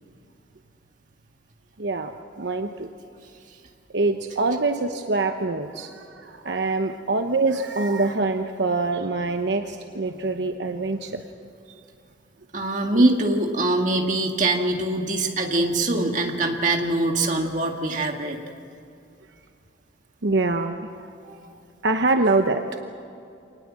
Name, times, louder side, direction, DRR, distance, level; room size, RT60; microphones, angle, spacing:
voice 1, 1.8-2.9 3.9-11.2 12.9-13.0 20.2-21.1 21.8-22.6, right 3 dB, 70° right, 5 dB, 0.9 m, -24 dB
voice 2, 12.5-18.4 21.2-21.4, right 2 dB, 40° right, 2 dB, 2.0 m, -23 dB
25.5 x 19.5 x 7.5 m, 2.6 s
head